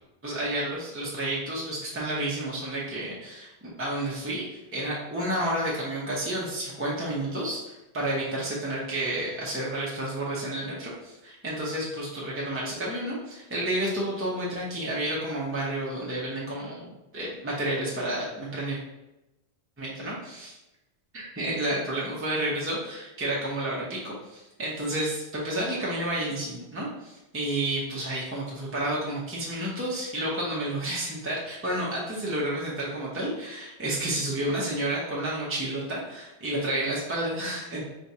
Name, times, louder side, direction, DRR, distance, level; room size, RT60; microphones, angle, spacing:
voice 1, 0.2-4.4 4.7-16.9 17.1-18.8 19.8-20.6 21.1-37.8, right 1 dB, 15° right, -5 dB, 0.8 m, -30 dB
4.5 x 3.4 x 2.8 m, 0.95 s
omnidirectional pair, 1.1 m